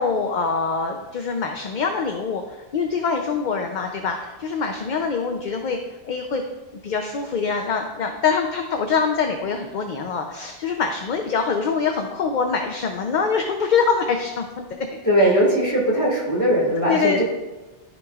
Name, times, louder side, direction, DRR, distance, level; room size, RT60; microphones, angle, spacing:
voice 1, 0.0-5.8 6.0-6.4 6.8-14.8 15.2-15.3 16.9-17.2, left 5 dB, 55° left, 4 dB, 0.7 m, -24 dB
voice 2, 15.0-17.2, equal, 15° left, -6 dB, 2.0 m, -19 dB
13.0 x 5.2 x 2.4 m, 1.1 s
omnidirectional pair, 1.0 m